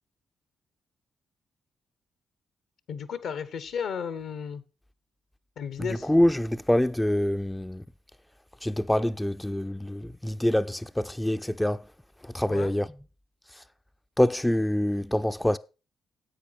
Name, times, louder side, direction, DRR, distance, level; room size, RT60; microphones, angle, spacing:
voice 1, 2.9-4.6 5.6-6.1 12.5-12.7, left 7 dB, 70° left, 1.0 m, -34 dB
voice 2, 6.0-7.8 8.6-11.8 12.2-12.9 14.2-15.6, left 1 dB, 10° left, 0.5 m, -25 dB
10.0 x 8.4 x 4.1 m
hypercardioid pair, 40°, 0 cm